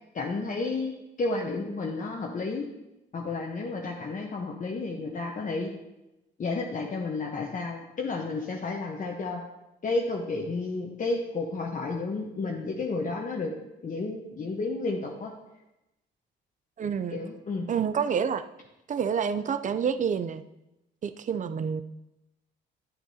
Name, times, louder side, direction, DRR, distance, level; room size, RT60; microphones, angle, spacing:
voice 1, 0.1-0.9 1.2-2.6 3.1-5.7 6.4-9.4 9.8-13.5 13.8-15.3 17.1-17.6, left 3 dB, 40° left, -1 dB, 1.0 m, -31 dB
voice 2, 16.8-17.2 17.7-18.4 18.9-20.4 21.0-21.8, right 7 dB, 40° right, 11 dB, 0.5 m, -28 dB
9.2 x 9.2 x 2.8 m, 0.95 s
cardioid pair, 90°, 20 cm